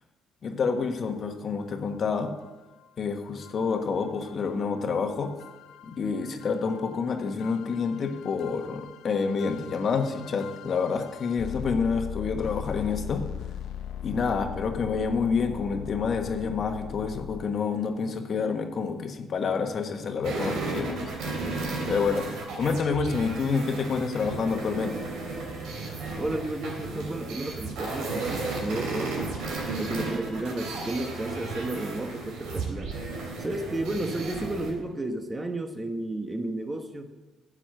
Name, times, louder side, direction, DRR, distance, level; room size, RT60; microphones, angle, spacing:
voice 1, 0.4-2.3 3.0-5.3 5.8-13.2 14.0-21.1 21.8-22.3 22.6-25.1, left 5 dB, 50° left, 6 dB, 1.3 m, -28 dB
sound 1, 1.6-1.7 2.4-2.5 2.8-2.9 3.4-17.8, left 9 dB, 75° left, 0.5 m, -40 dB
sound 2, 20.2-34.7, right 3 dB, 80° right, 3.4 m, -34 dB
voice 2, 26.2-29.4 29.7-33.0 33.4-37.1, right 1 dB, 20° right, 7 dB, 1.1 m, -32 dB
10.5 x 7.5 x 7.8 m, 1.2 s
cardioid pair, 95°, 0 cm